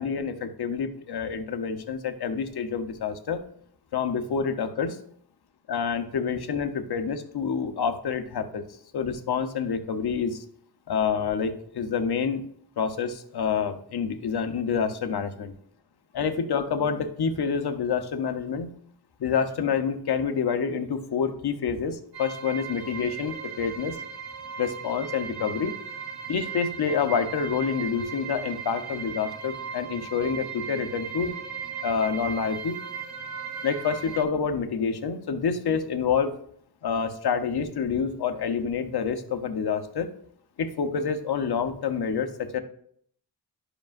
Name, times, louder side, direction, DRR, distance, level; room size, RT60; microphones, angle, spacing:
voice 1, 0.0-3.4 3.9-5.0 5.7-8.6 8.9-10.4 10.9-12.4 12.8-15.5 16.1-18.7 19.2-24.0 24.6-25.7 26.3-31.4 31.8-32.8 33.6-36.3 36.8-40.1 40.6-42.6, left 6 dB, 65° left, 8 dB, 0.9 m, -27 dB
sound 1, 22.1-34.2, right 7 dB, 60° right, 1.5 m, -37 dB
12.0 x 5.1 x 2.5 m, 0.64 s
cardioid pair, 85°, 42 cm